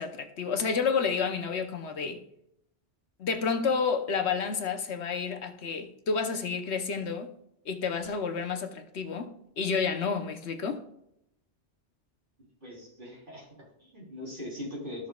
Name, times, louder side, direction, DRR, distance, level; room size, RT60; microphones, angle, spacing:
voice 1, 0.0-2.2 3.2-7.3 7.7-10.8, left 5 dB, 70° left, 1.1 m, -30 dB
voice 2, 12.6-15.1, left 1 dB, 50° right, 3.5 m, -41 dB
13.5 x 6.4 x 2.3 m
omnidirectional pair, 1.2 m